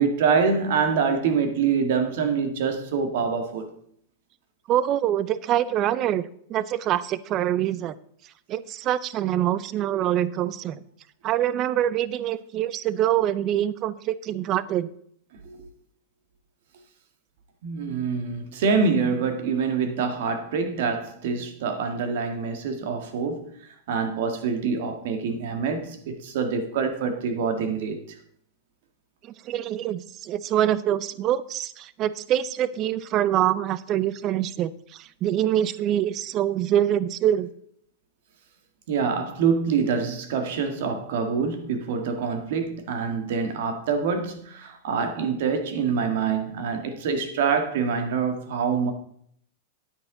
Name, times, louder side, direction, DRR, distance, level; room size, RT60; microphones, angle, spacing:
voice 1, 0.0-3.7 15.4-15.7 17.6-23.5 23.9-28.0 38.9-48.9, right 5 dB, 65° right, 1.9 m, -25 dB
voice 2, 4.7-6.2 6.5-8.0 8.5-10.8 11.2-14.9 29.4-37.5, right 11 dB, 30° right, 0.5 m, -25 dB
9.9 x 8.9 x 3.9 m
supercardioid pair, 155°, 0 cm